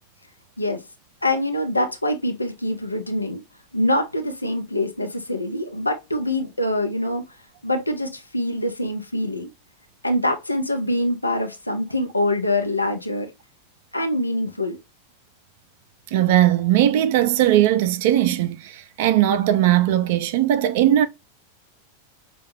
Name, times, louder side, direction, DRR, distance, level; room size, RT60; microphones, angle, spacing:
voice 1, 1.2-3.4 3.7-7.2 7.6-9.5 10.0-13.3 13.9-14.8, left 1 dB, 85° left, 0.6 m, -24 dB
voice 2, 16.1-21.1, right 12 dB, 50° right, 0.3 m, -19 dB
5.5 x 2.2 x 3.0 m
figure-of-eight pair, 90°, 0 cm